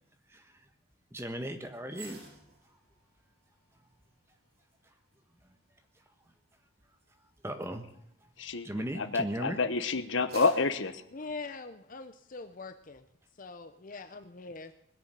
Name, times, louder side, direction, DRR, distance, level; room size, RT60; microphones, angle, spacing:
voice 1, 1.1-2.2 7.4-7.8 8.6-9.6, right 1 dB, 10° right, 6 dB, 1.3 m, -36 dB
sound 1, 1.9-9.3 9.8-12.1 12.5-12.7, right 2 dB, 50° right, 7.4 m, -55 dB
voice 2, 9.0-11.0, left 4 dB, 65° left, 12 dB, 1.0 m, -28 dB
voice 3, 11.1-13.0 13.4-14.7, left 3 dB, 40° left, 10 dB, 0.7 m, -43 dB
21.0 x 7.0 x 9.1 m, 0.73 s
head